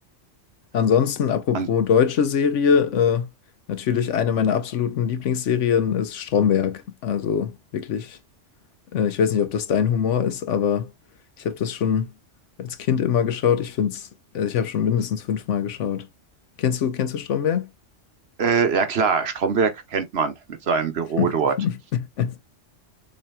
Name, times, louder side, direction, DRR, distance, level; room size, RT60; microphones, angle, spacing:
voice 1, 0.7-3.3 3.7-8.2 8.9-10.9 11.4-12.1 12.6-14.1 14.3-16.1 16.6-17.7 21.2-22.3, left 7 dB, 85° left, 1.1 m, -23 dB
voice 2, 18.4-21.5, right 5 dB, 60° right, 1.1 m, -23 dB
7.0 x 3.1 x 2.2 m
omnidirectional pair, 1.2 m